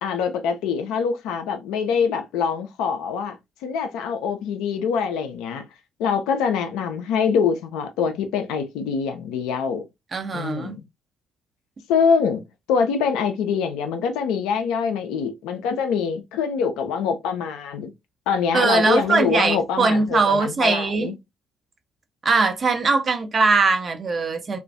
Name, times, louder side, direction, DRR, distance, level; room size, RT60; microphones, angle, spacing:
voice 1, 0.0-3.4 3.6-5.7 6.0-9.9 10.3-10.8 11.9-12.4 12.7-17.9 18.3-21.1, left 6 dB, 65° left, 0.3 m, -24 dB
voice 2, 10.1-10.8 18.5-21.1 22.2-24.6, right 4 dB, 40° right, 0.5 m, -21 dB
2.2 x 2.1 x 2.5 m
figure-of-eight pair, 45°, 0 cm